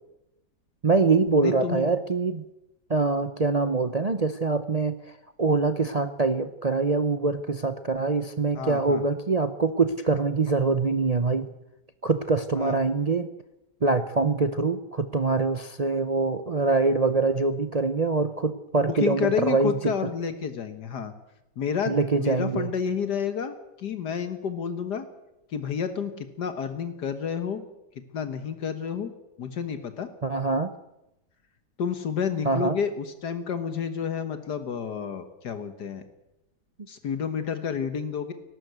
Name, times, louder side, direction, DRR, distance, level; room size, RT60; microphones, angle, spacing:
voice 1, 0.8-2.4 2.9-5.0 5.4-11.5 12.0-13.3 13.8-19.9 21.9-22.7 30.2-30.7 32.4-32.8, right 3 dB, 40° right, 10 dB, 0.5 m, -24 dB
voice 2, 1.4-1.9 8.5-9.0 12.6-12.8 18.9-21.1 21.6-25.1 25.5-27.6 28.1-29.1 29.4-30.1 31.8-36.0 36.9-38.3, left 7 dB, 75° left, 9 dB, 1.9 m, -30 dB
18.5 x 17.5 x 8.0 m, 0.92 s
omnidirectional pair, 1.8 m